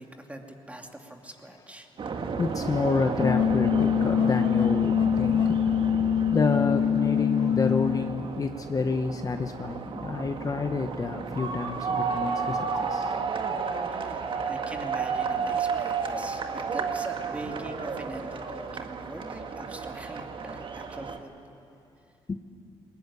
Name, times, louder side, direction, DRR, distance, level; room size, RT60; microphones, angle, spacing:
voice 1, 0.0-1.9 13.9-21.3, right 1 dB, 10° right, 3 dB, 2.7 m, -42 dB
sound 1, 2.0-21.2, right 5 dB, 50° right, 1.8 m, -32 dB
voice 2, 2.4-5.8 6.3-13.2 15.3-15.5 22.3-22.4, left 4 dB, 35° left, 6 dB, 1.1 m, -29 dB
sound 2, 3.2-8.2, left 8 dB, 50° left, 0.6 m, -24 dB
20.5 x 20.0 x 9.9 m, 2.5 s
cardioid pair, 90°, 11 cm